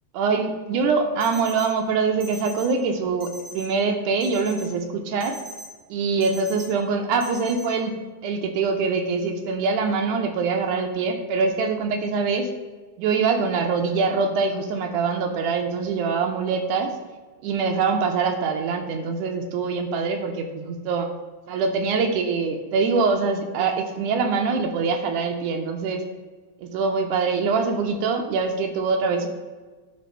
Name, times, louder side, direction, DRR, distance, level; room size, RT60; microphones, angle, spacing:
voice 1, 0.1-5.4 5.9-7.9 8.2-12.5 13.0-16.9 17.4-21.1 21.5-26.0 26.6-29.3, right 4 dB, 80° right, 4 dB, 1.8 m, -24 dB
sound 1, 1.2-1.7 2.2-2.7 3.2-3.7 4.2-4.7 5.2-5.7 6.2-6.7 7.2-7.7, right 1 dB, 60° right, 1.6 m, -40 dB
10.5 x 3.6 x 5.3 m, 1.3 s
omnidirectional pair, 4.2 m